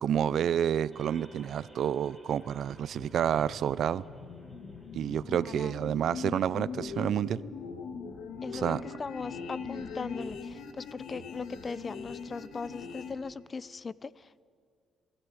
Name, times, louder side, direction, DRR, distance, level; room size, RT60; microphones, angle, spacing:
voice 1, 0.0-4.0 4.9-7.4 8.5-8.8, right 9 dB, 65° right, 18 dB, 0.5 m, -29 dB
sound 1, 0.9-6.5, equal, 15° left, 6.8 m, -55 dB
sound 2, 2.7-13.1, left 5 dB, 75° left, 1.8 m, -41 dB
voice 2, 5.4-5.7 8.4-14.4, left 4 dB, 35° left, 19 dB, 0.5 m, -39 dB
26.5 x 13.0 x 8.7 m, 2.2 s
cardioid pair, 90°, 0 cm